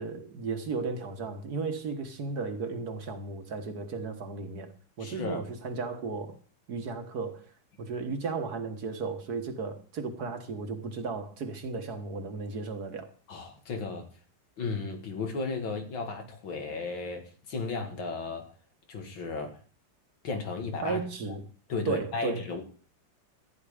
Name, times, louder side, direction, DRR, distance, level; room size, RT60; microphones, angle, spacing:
voice 1, 0.0-4.7 5.0-6.4 6.7-7.5 7.8-13.1 20.8-21.4 21.9-22.4, right 4 dB, 55° right, 1.9 m, -34 dB
voice 2, 5.0-5.4 13.3-14.1 14.6-18.5 18.9-19.6 20.2-21.0 21.3-21.4 21.7-22.6, left 4 dB, 85° left, 2.8 m, -34 dB
14.5 x 9.6 x 5.0 m
omnidirectional pair, 2.1 m